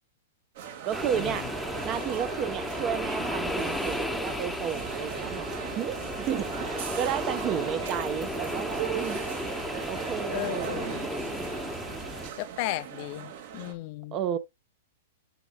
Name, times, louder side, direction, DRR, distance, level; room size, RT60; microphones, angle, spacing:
sound 1, 0.6-13.7, right 9 dB, 55° right, 2.4 m, -38 dB
voice 1, 0.8-1.5 1.8-5.5 5.7-9.2 9.8-10.9 14.1-14.4, right 10 dB, 30° right, 1.1 m, -32 dB
sound 2, 0.9-12.3, left 1 dB, ahead, 1.0 m, -34 dB
voice 2, 10.3-11.0 12.4-14.2, left 19 dB, 45° left, 0.6 m, -35 dB
11.0 x 5.3 x 2.4 m
hypercardioid pair, 150°, 0 cm